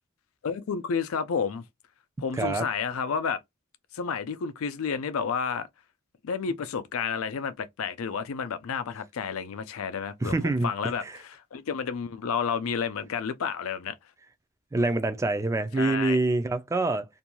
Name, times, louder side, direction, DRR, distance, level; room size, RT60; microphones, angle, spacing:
voice 1, 0.4-1.6 2.2-3.4 3.9-5.7 6.2-14.0 15.8-16.2, left 6 dB, 80° left, 0.4 m, -31 dB
voice 2, 2.3-2.7 10.2-10.7 11.0-11.2 14.7-17.1, right 2 dB, 15° right, 0.3 m, -26 dB
2.5 x 2.3 x 2.9 m
head